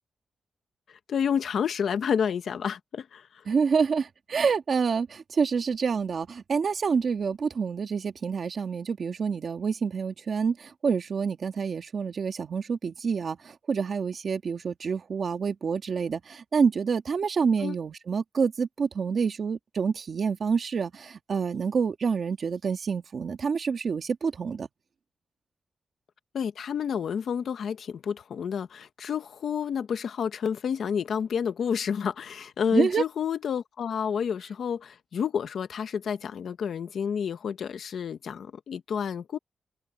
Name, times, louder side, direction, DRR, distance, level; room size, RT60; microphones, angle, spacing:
voice 1, 1.1-3.2 17.6-17.8 26.3-39.4, left 7 dB, 75° left, 1.3 m, -29 dB
voice 2, 3.5-24.7 32.7-33.0, right 5 dB, 55° right, 1.9 m, -27 dB
open air
wide cardioid pair, 120°, 0 cm